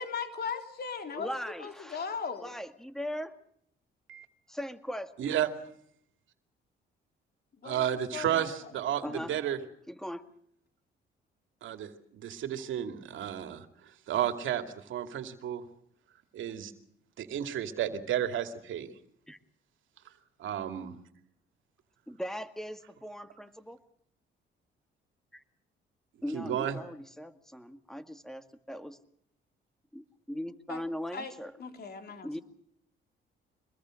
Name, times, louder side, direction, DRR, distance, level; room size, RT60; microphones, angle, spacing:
voice 1, 0.0-2.6 7.6-7.9 8.1-8.5 30.7-30.8 31.1-31.3 31.6-32.4, left 5 dB, 55° left, 6 dB, 3.6 m, -38 dB
voice 2, 1.1-2.1 2.4-3.3 4.5-5.3 9.0-9.3 9.9-10.2 19.3-19.4 22.1-23.8 25.3-25.4 26.2-29.0 29.9-31.5 32.2-32.4, equal, ahead, 9 dB, 1.9 m, -39 dB
voice 3, 7.6-9.6 11.6-13.7 14.1-15.6 16.3-16.7 17.2-18.9 20.4-20.9 26.3-26.8, right 10 dB, 75° right, 8 dB, 2.4 m, -32 dB
24.5 x 21.0 x 6.4 m, 0.68 s
cardioid pair, 90°, 20 cm